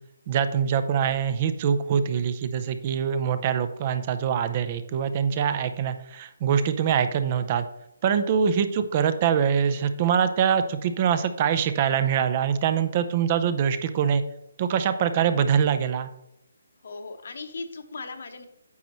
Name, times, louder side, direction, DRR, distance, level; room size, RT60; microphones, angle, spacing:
voice 1, 0.3-7.6 8.0-14.2 14.6-16.1, right 8 dB, 30° right, 11 dB, 0.5 m, -24 dB
voice 2, 16.8-18.5, left 3 dB, 60° left, 7 dB, 1.0 m, -37 dB
9.2 x 6.2 x 3.0 m, 0.82 s
hypercardioid pair, 165°, 0 cm